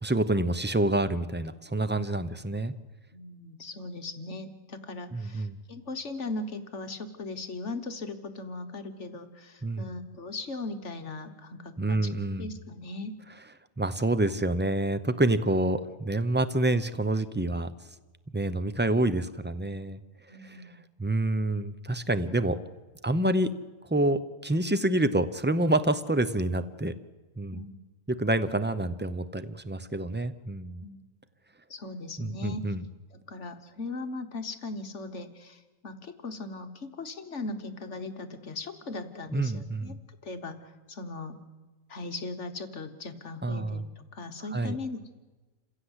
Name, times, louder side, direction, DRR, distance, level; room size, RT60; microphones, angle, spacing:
voice 1, 0.0-2.7 5.1-5.6 9.6-9.9 11.8-12.5 13.8-17.7 18.3-20.0 20.4-20.6 21.0-22.6 23.0-23.5 23.9-26.9 27.4-27.6 28.2-30.8 32.2-32.8 39.3-40.0 43.4-43.8 44.5-44.8, right 2 dB, 15° right, 12 dB, 0.5 m, -27 dB
voice 2, 3.1-13.1 20.3-20.8 27.5-27.8 30.8-31.0 31.7-32.7 33.1-41.4 41.9-45.1, left 3 dB, 55° left, 8 dB, 1.5 m, -39 dB
27.5 x 16.0 x 8.1 m, 1.2 s
omnidirectional pair, 1.5 m